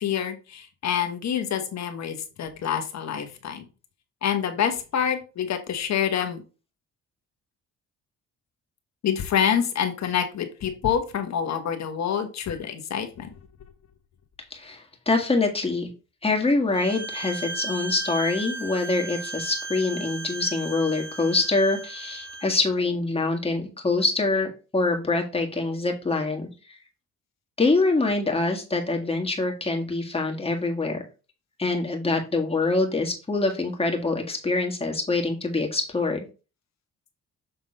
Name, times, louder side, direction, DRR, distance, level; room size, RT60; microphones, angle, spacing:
voice 1, 0.0-3.6 4.2-6.4 9.0-13.3, left 8 dB, 60° left, 8 dB, 1.3 m, -27 dB
voice 2, 14.5-15.9 16.2-26.5 27.6-31.0 31.6-36.3, left 3 dB, 20° left, 2 dB, 1.8 m, -25 dB
Bowed string instrument, 16.7-22.5, right 2 dB, 50° right, 3.2 m, -36 dB
6.8 x 3.7 x 4.2 m, 0.33 s
cardioid pair, 90°, 30 cm